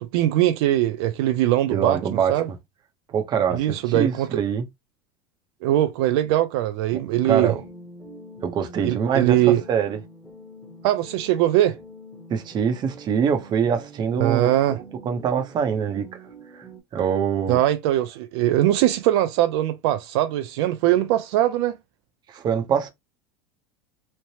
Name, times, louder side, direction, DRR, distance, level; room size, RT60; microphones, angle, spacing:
voice 1, 0.0-2.0 2.3-2.5 3.5-4.3 5.6-7.5 8.8-9.6 10.8-11.8 14.2-14.8 17.5-21.8, right 13 dB, 70° right, 0.4 m, -21 dB
voice 2, 1.7-2.6 3.1-4.6 6.9-7.6 8.4-10.0 12.3-14.8 15.0-16.1 16.5-16.6 16.9-17.6 22.3-22.9, right 7 dB, 30° right, 0.7 m, -24 dB
sound 1, 7.1-16.8, equal, ahead, 1.0 m, -44 dB
3.1 x 2.0 x 2.7 m
supercardioid pair, 130°, 14 cm